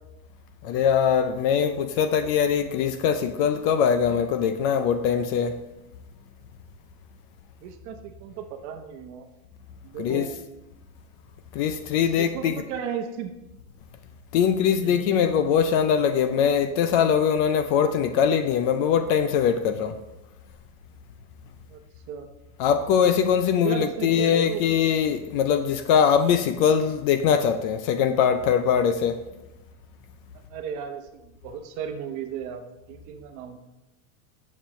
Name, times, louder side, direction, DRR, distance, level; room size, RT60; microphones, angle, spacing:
voice 1, 0.6-5.6 10.0-10.3 11.5-12.6 14.3-20.0 22.6-29.2, left 7 dB, 40° left, 0.5 m, -22 dB
voice 2, 7.6-9.3 9.8-10.3 12.2-13.4 14.8-15.1 21.7-21.8 22.1-22.3 23.5-24.7 30.5-33.6, right 8 dB, 40° right, 1.1 m, -35 dB
14.0 x 7.4 x 3.1 m
supercardioid pair, 155°, 43 cm